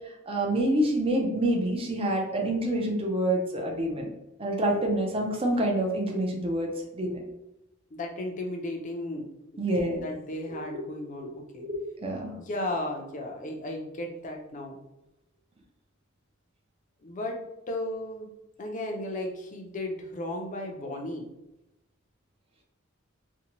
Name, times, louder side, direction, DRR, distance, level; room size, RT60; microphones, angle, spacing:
voice 1, 0.1-4.1 4.4-7.2 9.6-10.0 10.5-10.7 11.2-11.3 11.5-11.8 12.0-12.3, right 1 dB, 25° right, 0 dB, 0.5 m, -27 dB
voice 2, 7.9-11.7 12.4-14.8 17.0-18.3 18.6-21.3, left 1 dB, 40° left, 2 dB, 0.4 m, -35 dB
2.6 x 2.2 x 2.9 m, 0.89 s
head